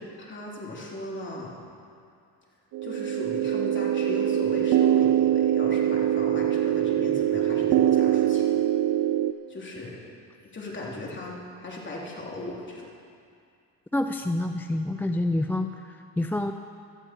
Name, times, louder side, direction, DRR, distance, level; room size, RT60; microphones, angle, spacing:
voice 1, 0.0-1.6 2.8-8.5 9.5-10.0 10.5-12.9, left 2 dB, 30° left, -3 dB, 3.2 m, -37 dB
sound 1, 2.7-9.3, right 11 dB, 60° right, 0.6 m, -23 dB
voice 2, 13.9-16.5, left 1 dB, 5° left, 7 dB, 0.3 m, -27 dB
17.0 x 12.5 x 4.5 m, 2.4 s
cardioid pair, 105°, 37 cm